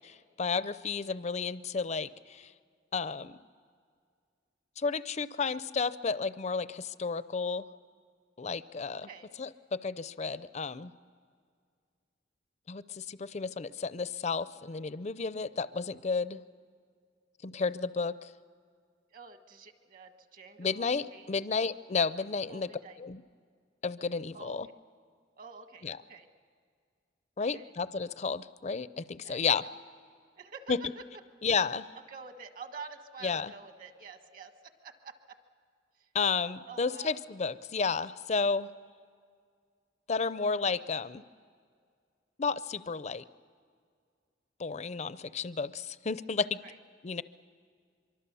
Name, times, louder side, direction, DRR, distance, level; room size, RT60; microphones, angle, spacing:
voice 1, 0.4-2.5 2.9-3.3 4.8-7.7 8.4-9.1 9.4-10.9 12.7-16.4 17.4-18.3 20.6-22.7 23.0-23.2 23.8-24.7 25.8-26.0 27.4-29.6 30.7-30.8 31.4-31.9 33.2-33.5 36.1-38.7 40.1-41.2 42.4-43.2 44.6-46.6 47.0-47.2, left 5 dB, 35° left, 15 dB, 0.5 m, -32 dB
voice 2, 19.1-21.4 22.5-23.0 24.3-24.6 25.4-26.3 27.4-27.7 29.2-29.7 30.4-31.0 32.1-35.4 36.0-36.1 36.6-37.2 46.6-46.8, right 5 dB, 45° right, 7 dB, 1.5 m, -48 dB
24.5 x 24.0 x 7.0 m, 2.1 s
head